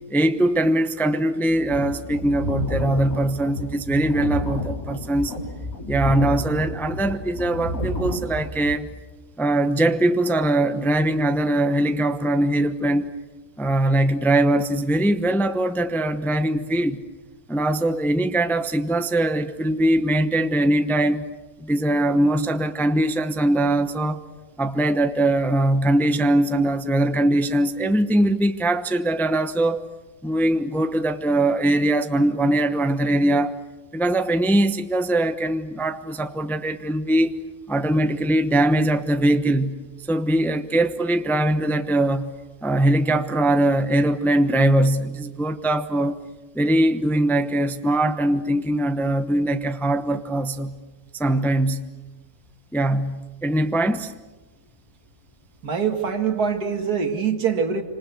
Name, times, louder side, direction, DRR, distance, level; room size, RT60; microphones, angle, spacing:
voice 1, 0.1-5.3 5.9-8.9 9.4-13.1 13.6-17.0 17.5-21.3 21.6-24.2 24.6-29.8 30.2-33.5 33.9-37.3 37.7-39.8 40.1-42.3 42.6-46.2 46.5-50.8 51.2-51.9 52.7-54.1, right 1 dB, ahead, 0.8 m, -21 dB
sound 1, 1.5-8.7, left 1 dB, 65° left, 6.2 m, -30 dB
voice 2, 55.6-57.8, right 6 dB, 75° right, 2.5 m, -24 dB
27.0 x 26.5 x 8.1 m
omnidirectional pair, 1.6 m